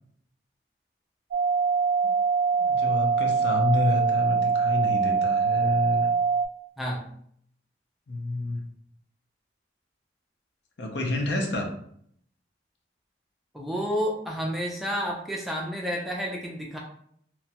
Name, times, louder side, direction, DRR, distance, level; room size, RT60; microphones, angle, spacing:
sound 1, 1.3-6.5, right 5 dB, 90° right, 0.3 m, -23 dB
voice 1, 2.6-6.1 8.1-8.6 10.8-11.7, left 2 dB, 70° left, 2 dB, 0.6 m, -28 dB
voice 2, 13.5-16.8, equal, ahead, -2 dB, 0.4 m, -30 dB
2.9 x 2.2 x 2.8 m, 0.66 s
head